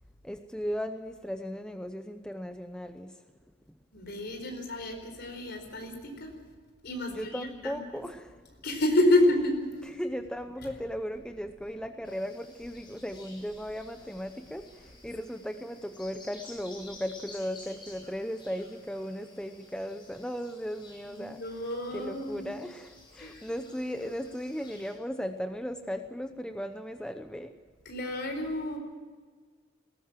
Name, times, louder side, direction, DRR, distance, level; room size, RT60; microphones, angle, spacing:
voice 1, 0.2-3.2 7.1-8.4 10.0-21.4 21.9-27.6, equal, 5° left, 7 dB, 0.7 m, -37 dB
voice 2, 3.9-6.3 6.8-8.0 8.6-9.7 10.6-10.7 21.1-22.5 23.2-23.4 27.8-28.8, left 1 dB, 55° left, 4 dB, 4.4 m, -29 dB
sound 1, 12.0-24.9, left 2 dB, 25° left, 7.0 m, -53 dB
20.0 x 18.0 x 7.4 m, 1.5 s
head